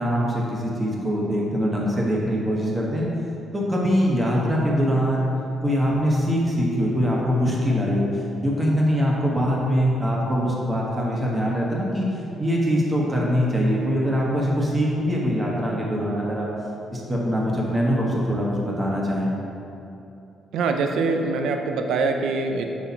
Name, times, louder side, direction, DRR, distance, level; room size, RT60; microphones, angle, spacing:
voice 1, 0.0-3.1 3.5-5.3 5.6-12.0 12.4-16.5 16.9-19.3, equal, 20° right, -3 dB, 1.1 m, -23 dB
voice 2, 20.5-22.7, right 4 dB, 80° right, 4 dB, 0.5 m, -23 dB
5.6 x 4.2 x 4.1 m, 2.8 s
cardioid pair, 110°, 0 cm